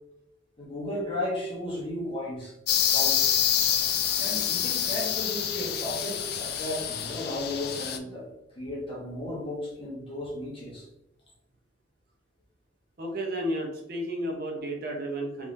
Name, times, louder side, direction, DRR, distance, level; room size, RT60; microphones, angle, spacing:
voice 1, 0.6-2.5 2.9-3.3 4.2-8.3 8.5-10.8, left 1 dB, 30° left, -5 dB, 1.2 m, -34 dB
sound 1, 2.7-8.0, left 9 dB, 55° left, 0.4 m, -27 dB
voice 2, 13.0-15.5, right 1 dB, 55° right, 0 dB, 0.8 m, -32 dB
3.5 x 3.1 x 2.6 m, 0.87 s
head